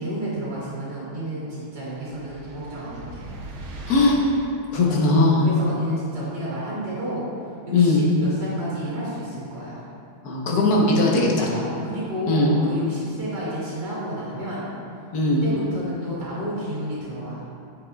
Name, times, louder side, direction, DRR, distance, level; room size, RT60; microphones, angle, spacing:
voice 1, 0.0-3.3 4.8-5.1 5.4-7.2 7.7-9.8 11.5-14.7 15.4-17.4, right 1 dB, 60° right, -10 dB, 2.7 m, -31 dB
sound 1, 2.0-4.6, right 2 dB, 90° right, 1.7 m, -39 dB
voice 2, 3.9-4.2 4.7-5.4 7.7-8.0 10.2-11.5 12.3-12.5 15.1-15.4, left 2 dB, 55° left, -3 dB, 1.5 m, -19 dB
9.4 x 7.9 x 2.4 m, 2.4 s
omnidirectional pair, 2.2 m